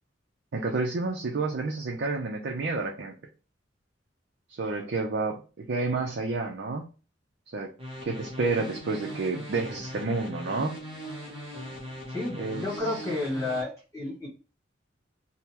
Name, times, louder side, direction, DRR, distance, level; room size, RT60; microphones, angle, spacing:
voice 1, 0.5-3.2 4.5-6.9 7.5-7.7 8.0-10.8 12.4-12.6, right 3 dB, 60° right, 0 dB, 0.5 m, -30 dB
sound 1, 7.8-13.6, equal, 30° right, 1.0 m, -40 dB
voice 2, 12.1-14.3, left 2 dB, 15° left, -5 dB, 1.3 m, -31 dB
3.6 x 2.1 x 2.9 m, 0.34 s
head